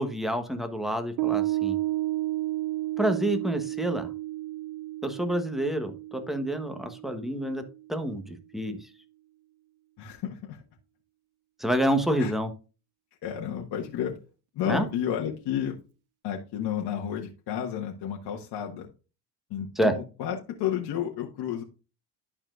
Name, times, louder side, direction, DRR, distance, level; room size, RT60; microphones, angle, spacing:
voice 1, 0.0-1.8 3.0-4.1 5.0-7.6 7.9-8.8 11.6-12.5 14.7-14.9 19.8-19.9, right 1 dB, ahead, 7 dB, 1.2 m, -28 dB
Piano, 1.2-7.9, right 17 dB, 70° right, 0.5 m, -32 dB
voice 2, 10.0-10.6 12.2-12.3 13.2-14.2 14.5-15.8 16.2-18.9 19.5-21.6, left 9 dB, 50° left, 1 dB, 1.5 m, -31 dB
12.0 x 4.4 x 2.5 m, 0.32 s
supercardioid pair, 85°, 49 cm